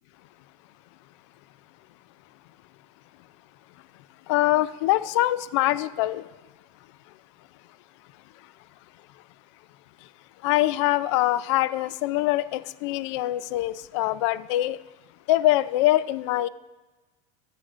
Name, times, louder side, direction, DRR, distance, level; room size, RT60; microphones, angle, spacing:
voice 1, 4.3-6.3 8.3-8.5 10.0-10.1 10.4-14.8 15.3-16.5, left 15 dB, 65° left, 0.4 m, -24 dB
13.5 x 8.0 x 2.5 m
supercardioid pair, 150°, 16 cm